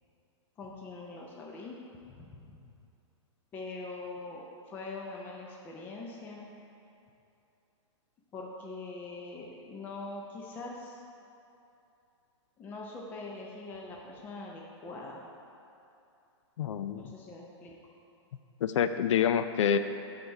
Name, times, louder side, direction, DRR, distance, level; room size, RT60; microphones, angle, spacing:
voice 1, 0.6-1.7 2.1-2.6 3.5-6.5 8.3-11.0 12.6-15.2 16.9-17.7, left 3 dB, 10° left, -2 dB, 0.5 m, -43 dB
voice 2, 16.6-17.0 18.6-19.8, left 8 dB, 80° left, 10 dB, 0.4 m, -27 dB
11.0 x 4.1 x 4.7 m, 2.8 s
hypercardioid pair, 160°, 15 cm